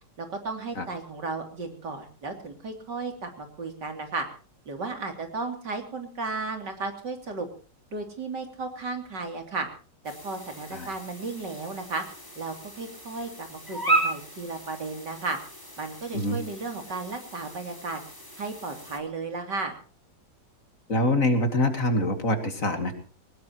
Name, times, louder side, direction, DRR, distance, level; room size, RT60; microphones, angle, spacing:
voice 1, 0.2-4.3 4.7-7.5 7.9-9.7 10.0-12.0 12.4-15.4 15.8-18.0 18.4-19.7, right 3 dB, 70° right, 5 dB, 3.7 m, -34 dB
sound 1, 10.0-19.0, right 2 dB, 10° left, 4.0 m, -34 dB
voice 2, 20.9-22.9, left 1 dB, 45° left, 7 dB, 2.7 m, -25 dB
22.0 x 19.5 x 3.0 m, 0.38 s
omnidirectional pair, 1.9 m